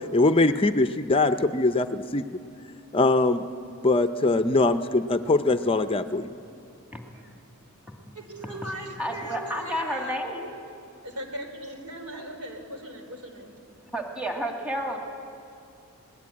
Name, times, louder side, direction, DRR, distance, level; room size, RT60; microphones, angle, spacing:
voice 1, 0.1-2.2 2.9-3.4 3.8-6.3, left 2 dB, 25° left, 10 dB, 0.5 m, -22 dB
voice 2, 6.9-7.3 7.9-8.1 8.4-8.5 9.0-10.5 12.1-12.3 13.9-15.1, equal, 5° right, 1 dB, 2.0 m, -32 dB
voice 3, 8.1-10.3 11.0-13.6, right 1 dB, 90° right, 5 dB, 3.3 m, -38 dB
21.5 x 19.5 x 8.5 m, 2.6 s
head